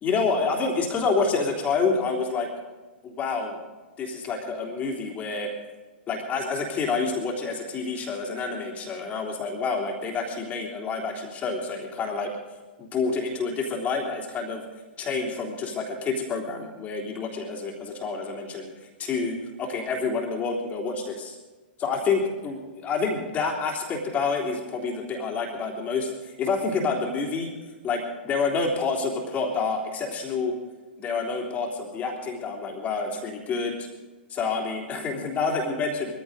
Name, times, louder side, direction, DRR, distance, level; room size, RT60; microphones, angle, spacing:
voice 1, 0.0-2.5 3.0-3.6 4.0-5.5 6.1-12.3 12.8-14.6 15.0-18.7 19.0-21.3 21.8-22.6 22.8-27.5 27.8-30.5 31.0-33.9 34.3-36.1, left 4 dB, 25° left, -1 dB, 3.4 m, -28 dB
21.0 x 15.0 x 4.0 m, 1.3 s
hypercardioid pair, 120°, 6 cm